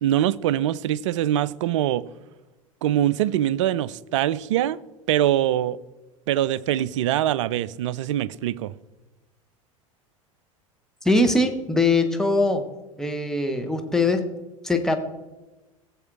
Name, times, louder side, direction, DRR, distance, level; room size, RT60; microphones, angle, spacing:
voice 1, 0.0-2.0 2.8-4.8 5.1-5.8 6.3-8.7, right 12 dB, 60° right, 0.4 m, -23 dB
voice 2, 11.0-12.7 13.0-14.3 14.6-15.0, left 2 dB, 5° left, 1.0 m, -21 dB
16.5 x 7.2 x 2.5 m
figure-of-eight pair, 75°, 18 cm